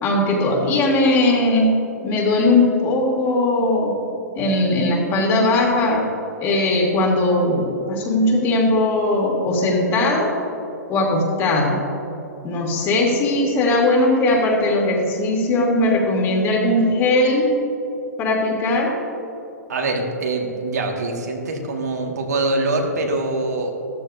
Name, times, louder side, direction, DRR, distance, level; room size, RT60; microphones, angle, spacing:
voice 1, 0.0-1.8 2.0-4.0 4.3-6.1 6.4-10.3 10.9-11.8 12.4-17.5 18.2-18.9, left 2 dB, 30° left, -1 dB, 2.8 m, -19 dB
voice 2, 19.7-23.7, right 2 dB, 65° right, 1 dB, 2.0 m, -24 dB
15.0 x 13.5 x 2.8 m, 2.8 s
figure-of-eight pair, 120°, 9 cm